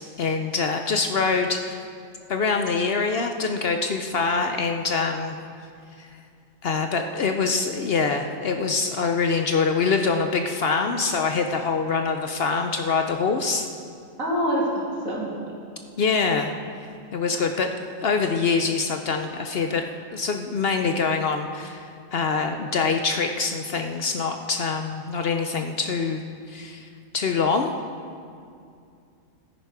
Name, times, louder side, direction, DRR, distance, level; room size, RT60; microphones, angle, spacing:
voice 1, 0.0-1.8 2.3-5.4 6.0-6.1 6.6-13.7 16.0-16.5 17.1-17.7 18.0-19.8 20.1-26.2 26.5-26.9 27.1-27.7, left 4 dB, 55° left, 5 dB, 0.7 m, -24 dB
voice 2, 14.2-15.3, equal, 80° right, -4 dB, 3.0 m, -25 dB
13.0 x 10.0 x 4.7 m, 2.4 s
omnidirectional pair, 1.4 m